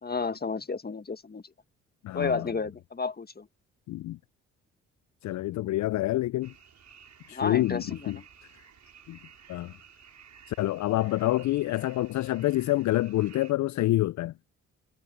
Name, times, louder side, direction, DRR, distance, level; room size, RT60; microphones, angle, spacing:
voice 1, 0.0-1.4 2.1-3.5 7.3-8.2, left 4 dB, 30° left, 1.8 m, -32 dB
voice 2, 2.0-2.5 3.9-4.2 5.2-6.5 7.3-8.2 9.1-9.2 9.5-9.7 10.5-14.3, left 16 dB, 60° left, 0.5 m, -27 dB
sound 1, 6.4-13.5, right 7 dB, 55° right, 6.5 m, -54 dB
hypercardioid pair, 50°, 33 cm